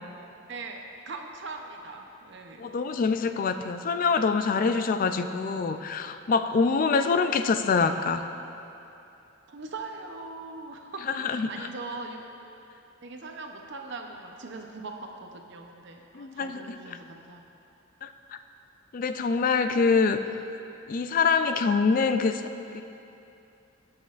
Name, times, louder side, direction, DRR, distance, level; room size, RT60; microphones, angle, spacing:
voice 1, 0.5-2.7 6.9-7.3 9.5-12.2 13.0-17.4, right 3 dB, 60° right, 3 dB, 0.7 m, -41 dB
voice 2, 2.6-8.3 11.1-11.7 16.1-16.8 18.0-18.1 18.9-20.2 20.9-22.4 22.7-22.8, left 4 dB, 40° left, 9 dB, 0.3 m, -25 dB
17.5 x 6.2 x 2.5 m, 2.8 s
head